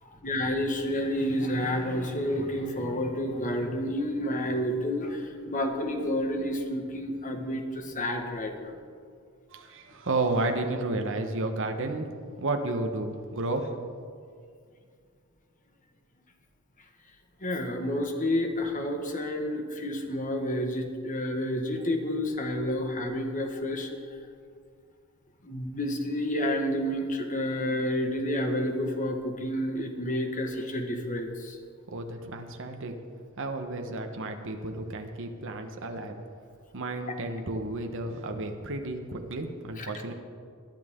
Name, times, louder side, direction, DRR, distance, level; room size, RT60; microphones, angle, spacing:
voice 1, 0.0-8.8 17.4-23.9 25.4-31.6 39.8-39.9, left 1 dB, 40° left, 3 dB, 1.6 m, -30 dB
voice 2, 9.5-12.1 12.4-13.7 31.9-32.9 33.4-36.2 36.7-40.1, right 2 dB, 65° right, 5 dB, 1.2 m, -32 dB
20.5 x 11.5 x 3.8 m, 2.2 s
head